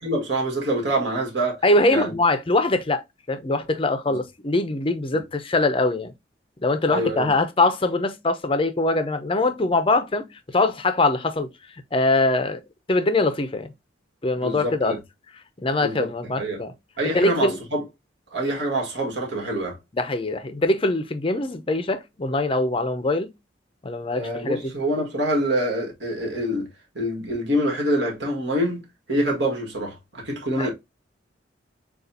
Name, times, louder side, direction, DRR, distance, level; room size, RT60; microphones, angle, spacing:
voice 1, 0.0-1.6 1.9-2.1 4.1-4.2 5.1-5.2 6.8-7.4 14.4-15.0 15.8-16.1 16.4-16.6 17.0-17.8 18.3-19.8 24.1-26.7 26.9-30.7, right 1 dB, 65° right, 1.7 m, -26 dB
voice 2, 1.6-3.0 3.3-6.1 6.6-11.5 11.9-12.6 12.9-13.7 14.2-14.9 15.6-16.7 17.1-17.6 19.9-23.3 23.8-24.6 30.6-30.7, left 2 dB, 30° left, 0.6 m, -22 dB
6.6 x 2.4 x 2.7 m
head